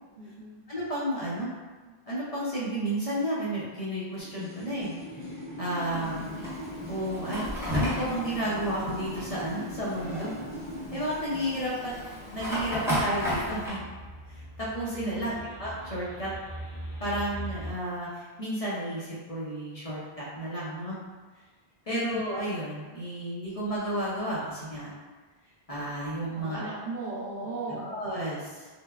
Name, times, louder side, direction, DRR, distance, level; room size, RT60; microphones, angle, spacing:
voice 1, 0.2-0.6 5.9-6.4 15.1-15.5 21.9-22.1 26.3-27.9, right 2 dB, 55° right, -6 dB, 0.6 m, -38 dB
voice 2, 0.7-1.5 2.1-5.3 5.6-6.4 6.9-7.4 7.7-10.3 10.9-11.9 12.3-13.9 14.3-16.3 17.0-20.9 21.9-24.9 25.7-26.7 27.8-28.7, right 1 dB, 45° left, -8 dB, 0.6 m, -32 dB
sound 1, 4.2-11.7, left 1 dB, 35° right, 1.0 m, -40 dB
Fire, 5.8-13.7, equal, 5° right, 0.8 m, -34 dB
sound 2, 12.3-17.7, right 1 dB, 60° left, 1.3 m, -42 dB
3.4 x 2.1 x 2.2 m, 1.4 s
omnidirectional pair, 1.0 m